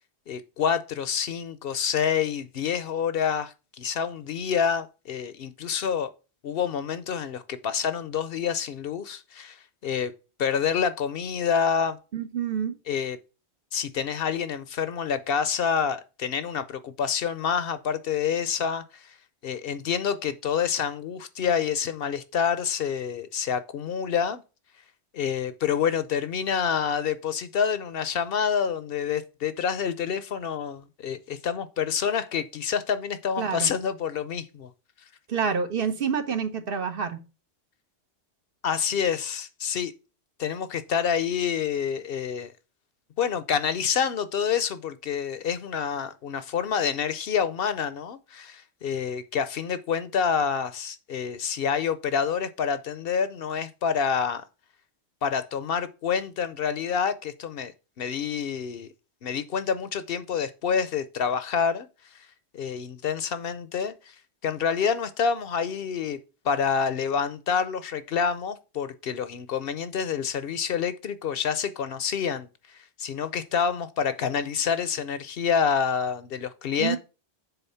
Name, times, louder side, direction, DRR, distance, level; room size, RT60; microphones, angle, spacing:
voice 1, 0.3-6.1 6.4-9.6 9.8-10.1 10.4-12.0 12.9-13.2 13.7-19.1 19.4-24.4 25.1-34.7 38.6-39.9 40.4-42.5 43.2-54.4 55.2-57.7 58.0-58.9 59.2-61.9 62.5-64.1 64.4-66.2 66.4-77.0, left 7 dB, 65° left, 0.8 m, -27 dB
voice 2, 12.1-12.8 33.4-33.7 35.3-37.2 76.8-77.0, right 6 dB, 60° right, 1.1 m, -27 dB
7.0 x 4.2 x 5.6 m
omnidirectional pair, 1.1 m